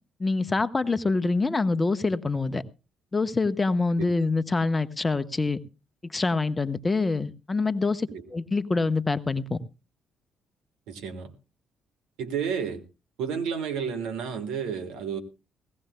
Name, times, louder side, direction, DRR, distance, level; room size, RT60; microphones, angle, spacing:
voice 1, 0.2-2.6 3.1-5.6 6.1-9.6, left 3 dB, 25° left, 0.9 m, -25 dB
voice 2, 10.9-11.3 12.2-12.8 13.2-15.2, right 7 dB, 80° right, 1.3 m, -31 dB
18.5 x 16.5 x 2.2 m
hypercardioid pair, 50°, 0 cm